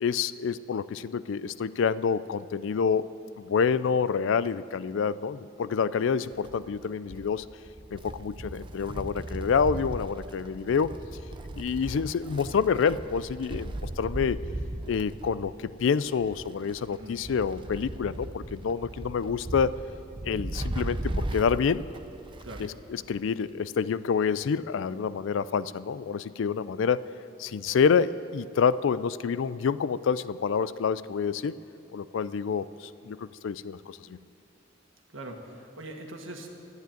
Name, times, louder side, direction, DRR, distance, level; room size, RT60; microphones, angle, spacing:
voice 1, 0.0-3.0 3.4-7.4 7.9-10.9 11.6-14.4 14.9-19.8 20.2-21.8 22.6-27.1 27.4-31.6 31.9-34.2, left 6 dB, 70° left, 17 dB, 0.4 m, -27 dB
Wind, 6.2-22.8 23.1-23.2 24.2-24.3, right 1 dB, 25° right, 0.6 m, -37 dB
voice 2, 35.1-36.5, right 1 dB, 80° right, 2 dB, 1.7 m, -42 dB
12.0 x 9.4 x 9.0 m, 2.7 s
head